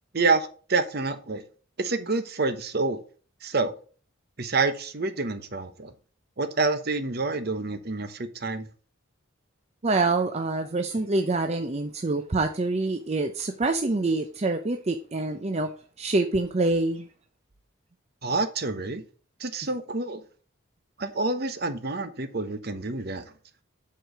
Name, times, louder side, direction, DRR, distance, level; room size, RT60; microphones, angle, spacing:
voice 1, 0.1-1.4 1.8-3.0 3.4-3.7 4.4-5.9 6.4-8.7 18.2-19.0 19.4-20.2 21.0-23.2, right 3 dB, 50° right, 0.9 m, -27 dB
voice 2, 9.8-15.7 16.0-17.1, right 3 dB, 30° right, 0.5 m, -26 dB
8.1 x 4.7 x 6.0 m
head